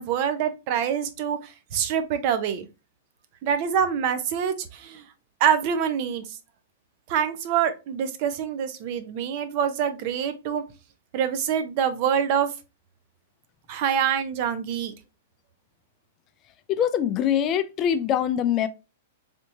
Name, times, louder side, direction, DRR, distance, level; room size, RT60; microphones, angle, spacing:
voice 1, 0.0-2.7 3.4-5.0 5.4-6.4 7.1-10.6 11.1-12.5 13.7-14.9, right 8 dB, 50° right, 0.6 m, -25 dB
voice 2, 16.7-18.7, left 9 dB, 30° left, 0.3 m, -23 dB
3.5 x 2.7 x 2.7 m
hypercardioid pair, 130°, 0 cm